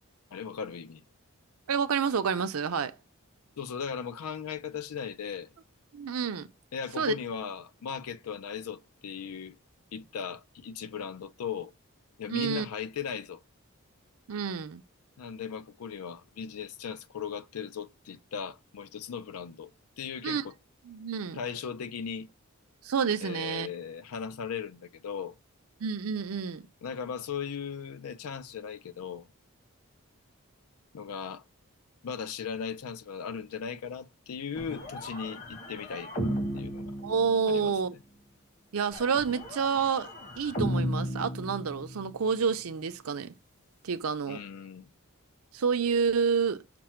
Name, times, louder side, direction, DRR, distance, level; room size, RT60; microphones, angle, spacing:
voice 1, 0.3-1.0 3.6-5.5 6.7-9.6 9.9-11.7 12.2-13.4 15.2-19.7 20.0-20.5 21.3-22.3 23.2-25.4 26.8-29.3 30.9-31.4 32.0-36.9 37.5-37.7 44.3-44.9, left 7 dB, 90° left, 0.4 m, -38 dB
voice 2, 1.7-3.0 5.9-6.5 7.0-7.1 12.3-12.7 14.3-14.8 20.2-20.4 20.9-21.4 22.8-23.7 25.8-26.7 37.0-37.9 38.7-40.1 40.4-43.3 43.8-44.4 45.5-46.6, right 6 dB, 80° right, 0.5 m, -29 dB
sound 1, 34.6-37.8 38.9-42.2, equal, 35° left, 1.0 m, -35 dB
5.9 x 2.1 x 4.3 m
head